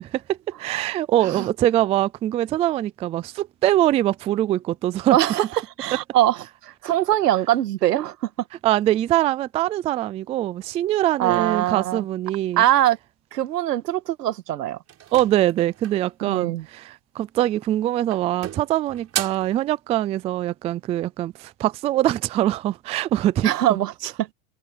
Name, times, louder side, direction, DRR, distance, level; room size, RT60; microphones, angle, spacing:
voice 1, 0.3-5.2 8.6-12.6 15.1-23.5, right 13 dB, 15° right, 0.3 m, -23 dB
voice 2, 5.1-5.5 5.8-6.4 6.6-8.3 11.2-12.0 12.6-13.0 13.3-14.8 16.2-16.7 23.4-24.3, right 13 dB, 90° right, 2.0 m, -22 dB
sound 1, 14.9-16.1 17.4-17.8 18.1-19.6, right 11 dB, 30° right, 6.3 m, -34 dB
supercardioid pair, 120°, 46 cm